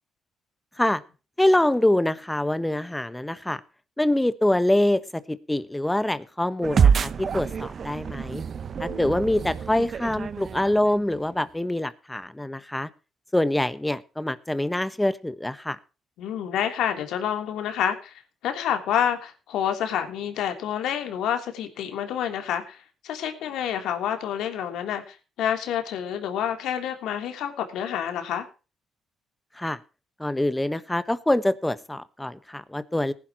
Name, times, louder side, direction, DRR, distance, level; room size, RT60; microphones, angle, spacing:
voice 1, 1.4-3.6 4.0-8.4 8.8-12.9 13.3-15.8 29.6-29.8 30.2-33.1, left 1 dB, 10° left, 13 dB, 1.3 m, -25 dB
sound 1, 6.6-11.3, right 7 dB, 50° right, 0.8 m, -26 dB
voice 2, 16.2-28.5, left 9 dB, 85° left, 5 dB, 3.2 m, -28 dB
19.0 x 11.0 x 3.0 m, 0.32 s
cardioid pair, 90°, 0 cm